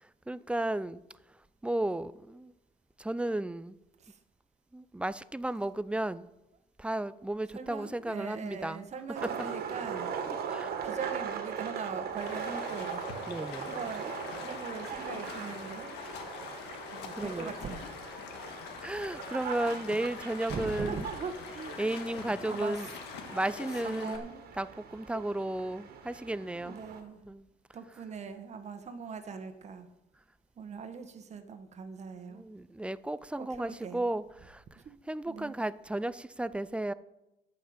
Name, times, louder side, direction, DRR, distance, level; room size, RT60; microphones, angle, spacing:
voice 1, 0.3-1.0 1.6-2.5 3.0-3.8 4.7-6.3 6.8-8.8 9.2-9.3 10.5-10.7 13.3-13.7 17.2-17.5 18.8-21.0 21.8-22.9 23.3-26.8 27.3-27.5 30.7-30.8 32.2-34.6 35.1-36.9, right 1 dB, 5° right, 0.4 m, -34 dB
voice 2, 7.5-10.1 10.8-13.0 13.6-15.9 16.9-17.9 20.5-22.1 22.4-22.9 23.8-24.4 26.5-27.2 27.7-29.9 30.6-32.4 33.3-34.1 34.7-34.9 35.2-35.6, right 5 dB, 40° right, 1.5 m, -41 dB
sound 1, 9.1-27.0, right 7 dB, 65° right, 2.0 m, -40 dB
Stream, 12.2-24.2, left 6 dB, 85° left, 1.7 m, -44 dB
11.0 x 5.8 x 8.7 m
cardioid pair, 110°, 17 cm